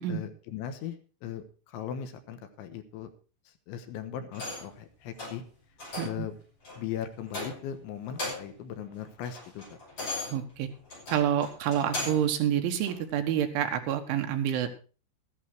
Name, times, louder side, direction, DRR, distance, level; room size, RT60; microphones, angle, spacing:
voice 1, 0.1-3.1 3.5-5.4 6.0-6.3 6.8-9.8, left 9 dB, 75° left, 9 dB, 3.5 m, -38 dB
sound 1, 4.3-4.8 5.2-5.4 5.8-6.2 6.6-6.8 7.3-7.8 8.1-8.6 9.0-12.3 12.8-13.0, left 2 dB, 25° left, 6.8 m, -38 dB
voice 2, 10.3-10.7 11.1-14.7, right 10 dB, 80° right, 6 dB, 3.8 m, -28 dB
14.0 x 11.0 x 4.6 m, 0.36 s
omnidirectional pair, 5.6 m